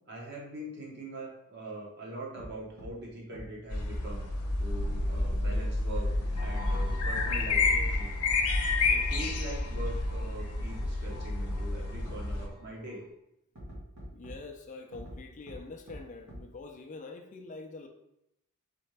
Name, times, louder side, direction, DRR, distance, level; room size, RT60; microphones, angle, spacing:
voice 1, 0.1-4.2 4.6-6.1 6.4-8.1 8.9-13.0, right 1 dB, 50° right, -2 dB, 1.2 m, -42 dB
sound 1, 2.4-2.5 2.8-2.9 3.3-3.4 4.8-5.6 6.2-6.4 6.7-6.8 7.1-7.2 7.6-7.7 9.2-9.4 9.7-9.8 11.1-11.2 11.5-11.6 12.1-12.2 13.6-14.3 14.9-15.2 15.5-15.6 15.9-16.0 16.3-16.4, equal, 80° right, 1.7 m, -44 dB
sound 2, 3.7-12.5, left 3 dB, 80° left, 0.7 m, -29 dB
sound 3, 6.3-13.1, left 1 dB, 20° right, 0.7 m, -46 dB
voice 2, 14.1-17.9, left 3 dB, 35° left, 4 dB, 0.4 m, -45 dB
4.2 x 3.7 x 3.2 m, 0.81 s
head